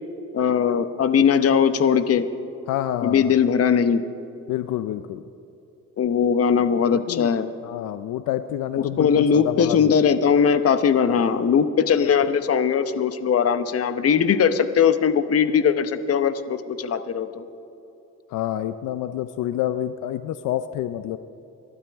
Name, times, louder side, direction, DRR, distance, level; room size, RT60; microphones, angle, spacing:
voice 1, 0.3-2.2 3.0-4.0 6.0-7.5 8.8-17.4, left 7 dB, 50° left, 11 dB, 0.9 m, -20 dB
voice 2, 2.7-3.3 4.5-5.2 6.9-7.3 7.6-9.9 18.3-21.2, left 12 dB, 85° left, 11 dB, 0.5 m, -28 dB
26.5 x 12.5 x 3.5 m, 2.9 s
cardioid pair, 90°, 30 cm